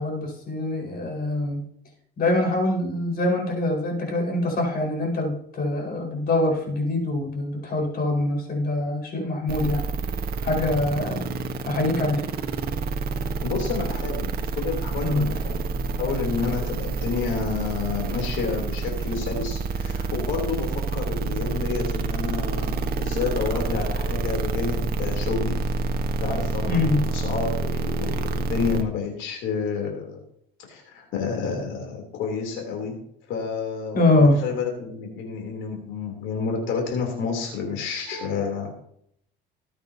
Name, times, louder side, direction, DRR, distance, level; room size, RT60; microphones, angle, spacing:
voice 1, 0.0-1.6 2.2-9.8 10.4-11.3 11.7-12.2 15.0-15.3 26.7-27.1 33.9-34.4 38.1-38.3, left 2 dB, 45° left, 0 dB, 5.1 m, -24 dB
sound 1, 9.5-28.8, right 3 dB, 45° right, 1.3 m, -28 dB
voice 2, 13.4-25.6 26.2-30.2 30.7-33.0 33.3-38.8, left 5 dB, 65° left, 2 dB, 3.4 m, -30 dB
19.0 x 8.8 x 2.9 m, 0.69 s
cardioid pair, 120°, 21 cm